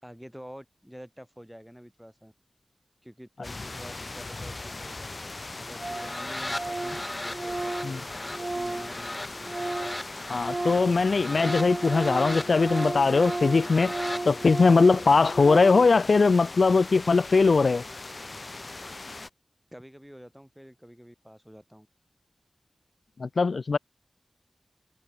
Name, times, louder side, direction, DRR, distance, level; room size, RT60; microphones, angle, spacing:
voice 1, 0.0-2.3 3.0-5.1 5.6-9.2 19.7-21.9, equal, 5° right, 6.3 m, -47 dB
sound 1, 3.4-19.3, left 3 dB, 45° left, 4.2 m, -40 dB
Organ, 4.8-4.9 5.1-5.2 5.4-5.5 5.8-6.2 6.4-10.0 10.3-16.0, right 2 dB, 40° right, 0.5 m, -34 dB
sound 2, 5.7-14.2, left 1 dB, 25° left, 3.4 m, -38 dB
voice 2, 10.3-13.9 14.3-17.8 23.2-23.8, left 4 dB, 75° left, 0.4 m, -21 dB
wide cardioid pair, 75°, 0 cm